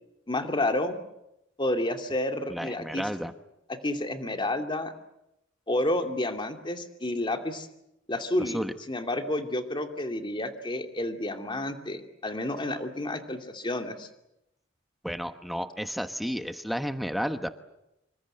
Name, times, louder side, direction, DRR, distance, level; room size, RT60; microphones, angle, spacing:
voice 1, 0.3-0.9 1.6-3.0 3.8-4.9 5.7-7.7 8.1-8.6 8.9-14.1, left 1 dB, 25° left, 5 dB, 2.6 m, -30 dB
voice 2, 2.5-3.3 8.4-8.7 15.0-17.5, equal, ahead, 9 dB, 1.1 m, -32 dB
27.0 x 25.0 x 7.9 m, 0.86 s
head